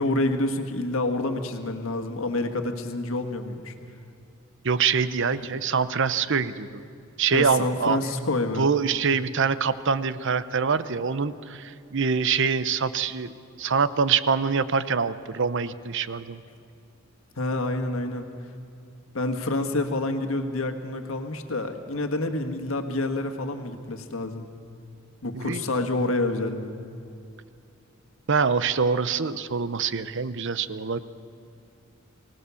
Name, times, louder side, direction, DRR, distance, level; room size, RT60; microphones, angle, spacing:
voice 1, 0.0-3.7 7.3-8.7 17.4-18.3 19.1-24.5 25.2-26.7, left 2 dB, 75° left, 6 dB, 1.7 m, -28 dB
voice 2, 4.6-6.8 7.2-8.0 8.6-13.3 13.6-16.4 25.3-25.6 28.3-31.0, right 5 dB, 60° right, 14 dB, 0.8 m, -25 dB
24.0 x 18.0 x 7.1 m, 2.5 s
head